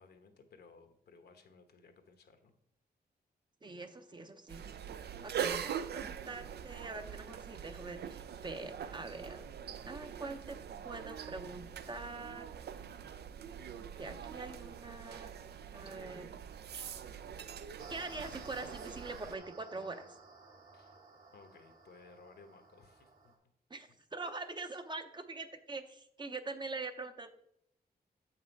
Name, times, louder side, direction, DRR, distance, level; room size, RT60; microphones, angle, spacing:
voice 1, 0.0-2.5 20.7-21.0 21.3-23.3 23.9-24.0, left 4 dB, 75° left, 7 dB, 1.1 m, -59 dB
voice 2, 3.6-4.7 5.2-9.4 9.8-10.6 10.8-12.5 14.0-15.4 15.7-16.3 16.7-16.9 17.9-20.2 23.7-27.3, right 3 dB, 25° right, 8 dB, 0.6 m, -44 dB
sound 1, 4.5-19.4, right 8 dB, 80° right, 0.5 m, -43 dB
sound 2, 17.8-23.3, right 3 dB, 60° right, 1.4 m, -54 dB
7.4 x 5.8 x 4.5 m, 0.75 s
wide cardioid pair, 100°, 17 cm